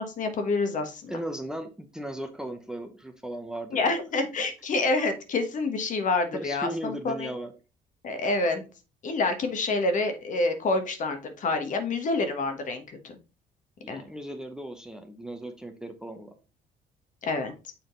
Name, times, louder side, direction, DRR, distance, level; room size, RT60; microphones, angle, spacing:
voice 1, 0.0-1.1 3.7-7.3 8.0-8.6 9.0-13.1 13.9-14.0 17.2-17.5, left 3 dB, 50° left, 7 dB, 1.3 m, -27 dB
voice 2, 1.1-3.9 6.3-7.5 13.8-16.3, right 1 dB, 5° right, 6 dB, 0.8 m, -37 dB
7.0 x 3.8 x 3.8 m, 0.33 s
cardioid pair, 110°, 17 cm